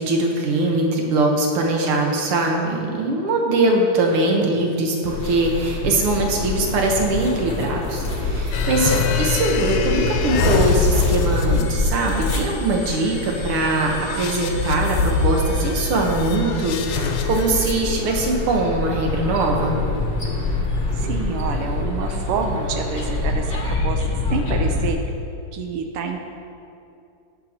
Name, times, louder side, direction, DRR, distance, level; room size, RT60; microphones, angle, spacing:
voice 1, 0.0-19.8, right 2 dB, 60° right, 0 dB, 1.7 m, -21 dB
sound 1, 5.0-24.9, left 2 dB, 30° left, 1.0 m, -26 dB
sound 2, 8.5-17.8, left 4 dB, 85° left, 2.1 m, -24 dB
voice 2, 20.9-23.6 23.8-24.0 24.3-25.0 25.5-26.2, right 5 dB, 85° right, 3 dB, 1.3 m, -27 dB
19.0 x 6.9 x 2.9 m, 2.6 s
omnidirectional pair, 3.4 m